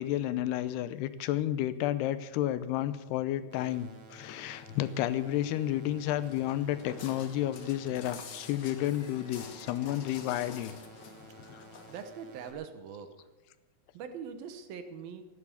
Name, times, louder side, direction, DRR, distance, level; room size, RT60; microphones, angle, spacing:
voice 1, 0.0-10.7 11.4-11.6, left 13 dB, 90° left, 13 dB, 2.9 m, -31 dB
sound 1, 3.5-12.5, right 2 dB, 50° right, 3.0 m, -53 dB
Walk footsteps, 6.2-12.0, left 5 dB, 55° left, 2.1 m, -48 dB
voice 2, 11.9-13.3 13.9-15.2, right 7 dB, 70° right, 8 dB, 2.9 m, -42 dB
14.5 x 11.0 x 8.5 m, 1.1 s
omnidirectional pair, 4.6 m